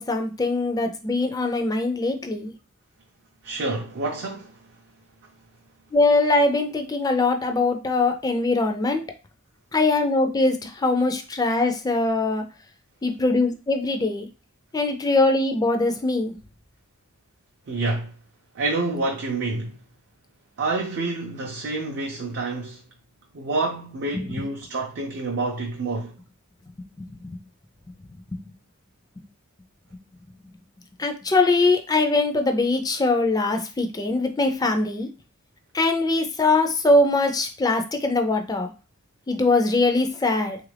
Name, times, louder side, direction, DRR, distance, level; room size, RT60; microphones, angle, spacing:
voice 1, 0.0-2.5 5.9-9.0 9.7-12.4 13.0-14.3 14.7-16.3 24.1-24.3 27.1-27.3 28.3-28.4 31.0-35.1 35.7-38.7 39.3-40.6, left 2 dB, 15° left, 0.4 m, -22 dB
voice 2, 3.4-4.6 17.7-18.1 18.5-19.8 20.6-22.8 23.3-26.1, right 3 dB, 50° right, 0.5 m, -28 dB
3.4 x 2.4 x 3.2 m
head